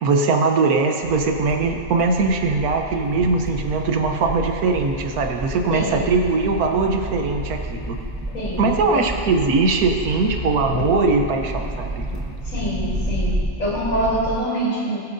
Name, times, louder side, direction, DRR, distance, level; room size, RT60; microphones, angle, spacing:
voice 1, 0.0-8.0 8.6-12.0, right 4 dB, 80° right, 3 dB, 1.4 m, -21 dB
sound 1, 1.0-14.4, right 1 dB, 15° right, 1.0 m, -31 dB
sound 2, 2.9-13.4, left 8 dB, 90° left, 1.2 m, -38 dB
voice 2, 5.7-6.0 8.3-9.1 12.4-15.0, right 1 dB, 65° left, -7 dB, 3.6 m, -25 dB
21.5 x 7.6 x 2.6 m, 2.4 s
omnidirectional pair, 1.6 m